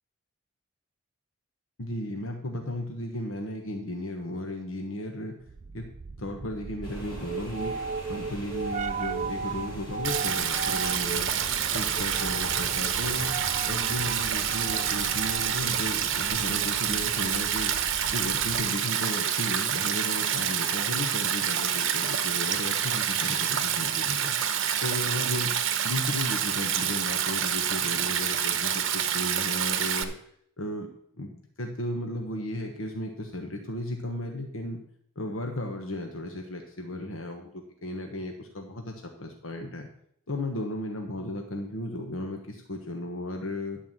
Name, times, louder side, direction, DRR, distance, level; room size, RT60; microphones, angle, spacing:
voice 1, 1.8-5.4 5.7-5.8 6.2-7.8 8.1-11.3 11.7-13.3 13.6-17.7 18.1-24.3 24.8-25.5 25.8-30.1 30.6-30.9 31.2-34.8 35.1-39.9 40.3-43.8, left 1 dB, 70° left, 3 dB, 1.2 m, -35 dB
sound 1, 5.5-18.8, right 5 dB, 35° right, 0.4 m, -37 dB
sound 2, 6.8-16.6, equal, 25° left, 3.3 m, -43 dB
Stream, 10.0-30.0, right 9 dB, 65° right, 0.9 m, -27 dB
11.0 x 4.7 x 7.4 m, 0.68 s
head